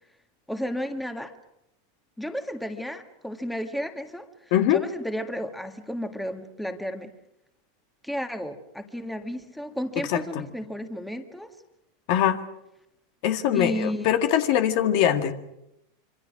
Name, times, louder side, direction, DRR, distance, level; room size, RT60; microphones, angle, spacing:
voice 1, 0.5-1.3 2.2-4.3 4.7-7.1 8.0-11.5 13.5-14.1, equal, 5° left, 6 dB, 1.8 m, -32 dB
voice 2, 4.5-4.8 10.1-10.2 12.1-12.4 13.2-15.3, left 10 dB, 60° left, 7 dB, 2.0 m, -22 dB
26.5 x 24.5 x 6.2 m, 0.84 s
supercardioid pair, 130°, 0 cm